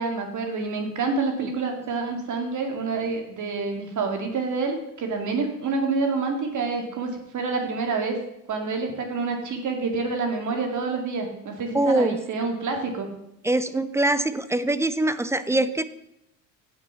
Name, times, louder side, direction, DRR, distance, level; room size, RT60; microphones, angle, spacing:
voice 1, 0.0-8.2 8.5-13.1, right 4 dB, 45° right, 3 dB, 2.3 m, -27 dB
voice 2, 11.7-12.2 13.4-15.8, right 2 dB, 5° right, 13 dB, 0.4 m, -23 dB
8.2 x 6.3 x 5.7 m, 0.82 s
supercardioid pair, 90°, 41 cm